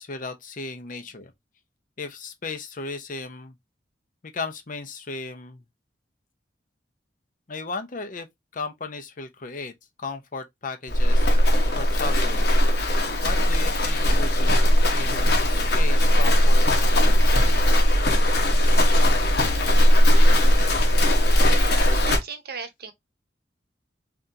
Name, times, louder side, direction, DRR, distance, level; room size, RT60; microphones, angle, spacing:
voice 1, 0.0-1.3 2.0-3.5 4.3-5.6 7.5-8.3 8.5-9.7 10.0-12.6 13.2-17.4, left 3 dB, 50° left, 0.8 m, -36 dB
Livestock farm animals working animals, 10.9-22.2, equal, 65° left, 1.2 m, -18 dB
voice 2, 21.4-22.9, right 5 dB, 60° right, 0.8 m, -37 dB
3.8 x 3.5 x 2.7 m
head